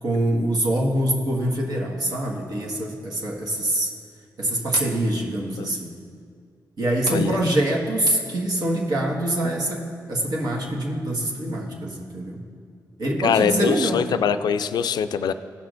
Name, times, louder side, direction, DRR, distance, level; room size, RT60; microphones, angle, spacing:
voice 1, 0.0-3.9 4.4-5.9 6.8-12.4 13.0-14.1, right 1 dB, 65° right, -2 dB, 1.6 m, -24 dB
voice 2, 7.1-7.4 13.2-15.3, left 7 dB, 70° left, 11 dB, 0.4 m, -23 dB
16.5 x 5.8 x 2.5 m, 2.3 s
cardioid pair, 60°, 7 cm